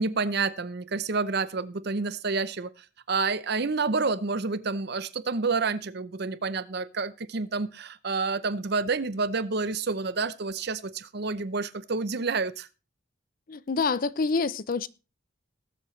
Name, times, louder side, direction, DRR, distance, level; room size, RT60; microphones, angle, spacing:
voice 1, 0.0-2.7 3.1-12.7, right 4 dB, 50° right, 0.7 m, -29 dB
voice 2, 13.5-14.9, left 4 dB, 45° left, 0.5 m, -27 dB
20.0 x 7.6 x 3.2 m
head